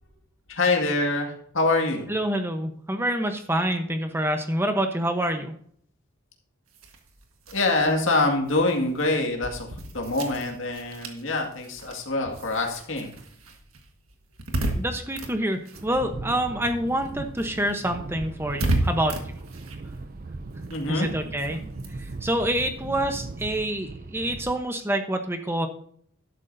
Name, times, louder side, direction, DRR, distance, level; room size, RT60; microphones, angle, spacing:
voice 1, 0.5-2.1 7.5-13.1 20.7-21.1, left 2 dB, 65° left, 2 dB, 2.1 m, -25 dB
voice 2, 2.1-5.5 14.7-19.2 20.9-21.6 22.0-25.7, right 1 dB, 10° right, 6 dB, 0.9 m, -27 dB
sound 1, 6.7-16.6 16.9-23.8, right 1 dB, 85° right, 1.6 m, -35 dB
sound 2, 15.7-24.6, right 3 dB, 40° right, 0.5 m, -38 dB
12.0 x 11.5 x 2.7 m, 0.63 s
head